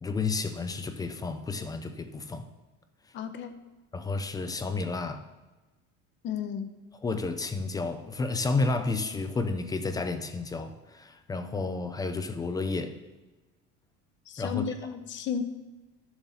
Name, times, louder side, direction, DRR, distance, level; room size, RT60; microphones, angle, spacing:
voice 1, 0.0-2.5 3.9-5.2 7.0-13.0 14.4-14.7, left 3 dB, 15° left, 0.4 m, -31 dB
voice 2, 3.1-3.6 6.2-6.7 14.3-15.4, left 7 dB, 40° left, 0.8 m, -33 dB
12.0 x 7.0 x 4.1 m
cardioid pair, 165°, 30 cm